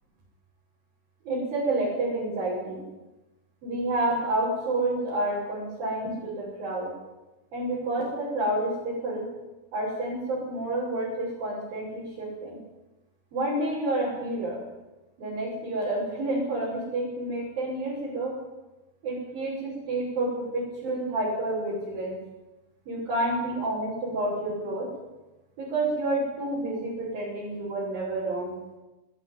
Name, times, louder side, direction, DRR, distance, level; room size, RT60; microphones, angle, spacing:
voice 1, 1.3-2.8 3.6-6.9 7.5-9.2 9.7-12.6 13.3-14.6 15.2-18.4 19.0-22.2 22.9-24.9 25.6-28.5, right 2 dB, 65° right, -6 dB, 8.0 m, -29 dB
20.0 x 18.0 x 9.5 m, 1.0 s
omnidirectional pair, 4.4 m